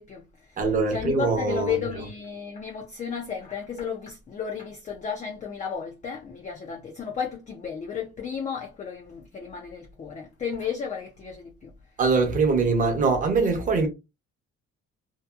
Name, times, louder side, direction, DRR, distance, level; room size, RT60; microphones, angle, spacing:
voice 1, 0.0-0.6 0.9-11.7, left 6 dB, 25° left, 0.4 m, -33 dB
voice 2, 0.6-1.8 12.0-13.9, right 4 dB, 30° right, 0.7 m, -22 dB
2.7 x 2.5 x 2.3 m
cardioid pair, 180°, 29 cm